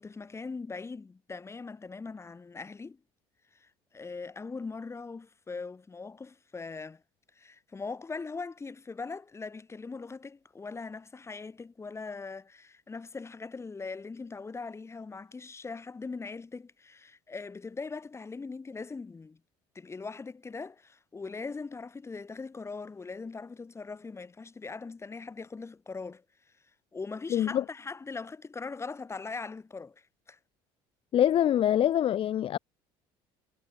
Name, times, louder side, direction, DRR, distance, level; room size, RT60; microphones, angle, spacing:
voice 1, 0.0-3.0 3.5-7.0 7.3-19.4 19.7-26.5 26.9-30.4, left 4 dB, 20° left, 2.7 m, -41 dB
voice 2, 27.3-27.6 31.1-32.6, left 11 dB, 50° left, 1.1 m, -24 dB
supercardioid pair, 80°, 12 cm